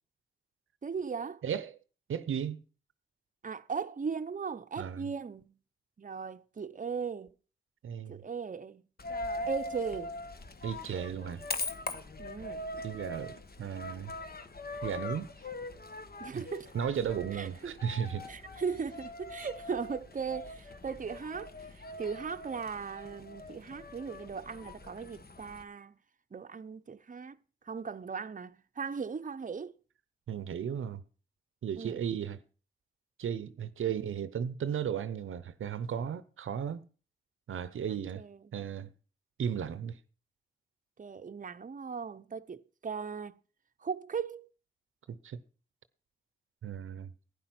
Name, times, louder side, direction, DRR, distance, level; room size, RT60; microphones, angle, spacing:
voice 1, 0.8-1.4 3.4-5.6 6.0-7.3 8.1-8.8 9.5-10.1 12.2-12.6 16.2-16.7 17.3-17.8 18.3-26.0 26.3-27.4 27.7-29.8 31.8-32.0 37.9-38.4 41.0-43.4 43.8-44.5, right 5 dB, 40° right, 0.7 m, -38 dB
voice 2, 1.4-1.7 2.1-2.6 4.8-5.1 7.8-8.2 10.6-11.4 12.8-14.1 14.8-15.3 16.3-16.5 16.7-18.3 30.3-31.0 31.6-32.4 33.2-36.9 37.5-38.2 38.5-38.9 39.4-40.0 45.1-45.4 46.6-47.1, right 8 dB, 85° right, 0.7 m, -35 dB
Coin (dropping), 9.0-25.6, left 2 dB, 50° left, 1.3 m, -42 dB
11.5 x 9.8 x 5.9 m
cardioid pair, 45°, 20 cm